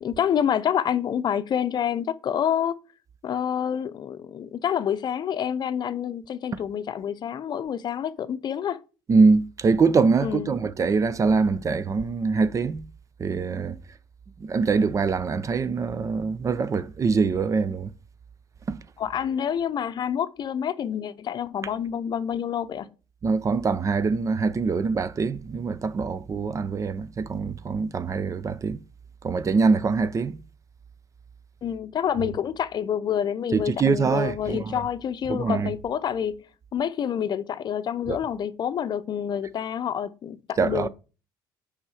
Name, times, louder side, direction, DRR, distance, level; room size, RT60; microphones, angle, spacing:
voice 1, 0.0-2.8 3.2-8.8 10.2-10.5 19.0-22.9 31.6-36.4 36.7-40.9, left 9 dB, 50° left, 0.6 m, -28 dB
voice 2, 9.1-12.8 13.2-13.8 14.4-17.9 18.7-18.8 23.2-28.8 29.2-30.4 33.5-34.8 35.3-35.7 38.1-38.2 40.6-40.9, right 4 dB, 35° right, 0.6 m, -23 dB
6.1 x 4.9 x 4.9 m
supercardioid pair, 80°, 10 cm